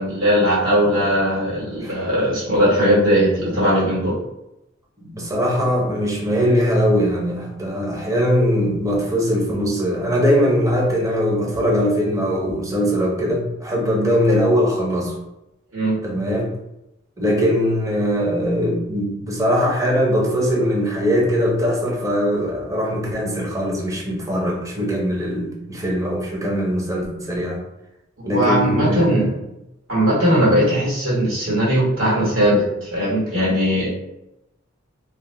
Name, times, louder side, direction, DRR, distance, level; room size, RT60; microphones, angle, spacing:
voice 1, 0.0-4.1 15.7-16.0 28.2-29.3 29.9-33.9, equal, 80° right, -7 dB, 1.5 m, -19 dB
voice 2, 5.1-15.2 16.0-16.5 17.2-27.6 28.3-29.4 30.4-30.6, equal, 15° right, -1 dB, 0.5 m, -21 dB
2.7 x 2.0 x 3.0 m, 0.87 s
head